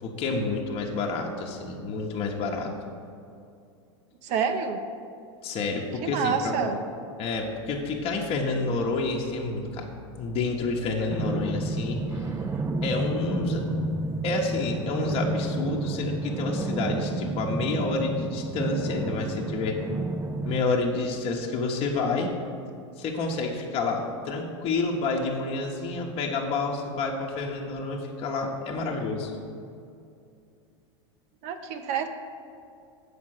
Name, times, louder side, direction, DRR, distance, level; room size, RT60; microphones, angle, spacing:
voice 1, 0.0-2.7 5.4-6.7 7.2-9.9 10.2-12.3 12.8-13.7 14.2-19.8 20.4-22.3 23.0-29.3, left 3 dB, 40° left, 0 dB, 1.0 m, -29 dB
voice 2, 4.2-4.8 6.0-6.8 31.4-32.1, right 7 dB, 45° right, 7 dB, 0.7 m, -28 dB
sound 1, 11.1-20.6, right 2 dB, 15° right, 0.4 m, -31 dB
7.4 x 5.1 x 6.4 m, 2.5 s
hypercardioid pair, 110°, 16 cm